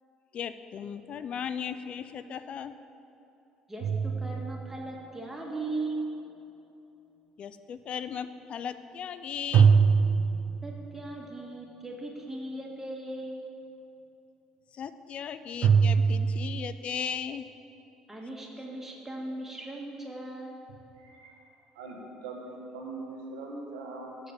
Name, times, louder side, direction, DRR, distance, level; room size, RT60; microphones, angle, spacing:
voice 1, 0.3-2.8 7.4-9.7 14.7-17.5, left 7 dB, 50° left, 12 dB, 0.4 m, -37 dB
voice 2, 3.7-6.1 10.6-13.4 18.1-20.6, right 2 dB, 15° right, -1 dB, 1.9 m, -38 dB
sound 1, 3.8-5.0 9.5-11.1 15.6-16.8, right 6 dB, 60° right, 0.5 m, -23 dB
voice 3, 21.0-21.3 21.7-24.2, right 3 dB, 85° right, -2 dB, 1.4 m, -41 dB
6.8 x 6.5 x 6.8 m, 2.9 s
hypercardioid pair, 70°, 2 cm